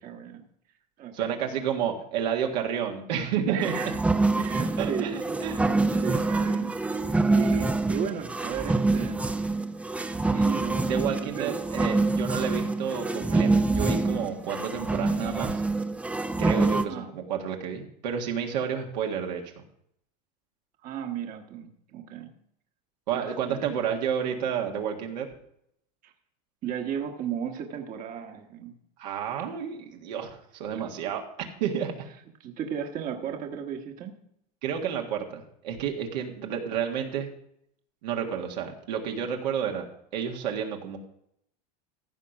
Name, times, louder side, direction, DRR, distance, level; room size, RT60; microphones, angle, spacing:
voice 1, 0.0-0.4 1.0-1.3 3.5-4.0 4.4-5.7 6.0-9.3 10.3-11.5 16.9-17.1 20.8-22.3 23.1-23.7 26.0-26.1 26.6-28.7 30.7-30.9 32.4-34.1, right 8 dB, 40° right, 4 dB, 1.3 m, -35 dB
voice 2, 1.1-3.7 4.8-6.1 10.9-15.6 16.4-19.5 23.1-25.3 29.0-31.2 31.6-31.9 34.6-37.3 38.0-39.9 40.1-41.0, right 8 dB, 80° right, 2 dB, 1.8 m, -30 dB
sound 1, 3.6-16.9, right 3 dB, 5° right, 0.5 m, -26 dB
15.0 x 5.1 x 6.0 m, 0.73 s
supercardioid pair, 120°, 21 cm